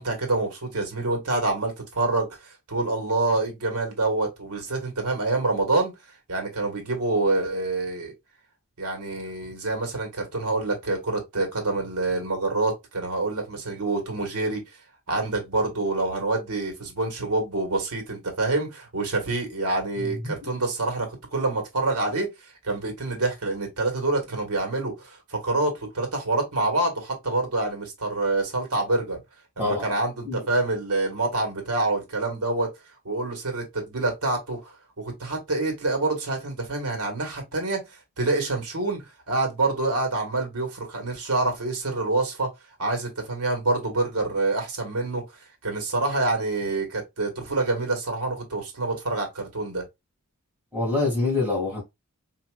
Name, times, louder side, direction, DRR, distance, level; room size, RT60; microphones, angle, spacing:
voice 1, 0.0-5.9 6.3-8.1 8.8-14.6 15.1-29.2 29.6-32.7 33.0-37.9 38.2-42.5 42.8-45.2 45.6-49.8, right 2 dB, 90° right, 1.6 m, -27 dB
voice 2, 20.0-20.5 29.6-29.9 30.3-30.4 50.7-51.8, left 3 dB, 5° right, 2.1 m, -26 dB
4.2 x 2.8 x 2.4 m
head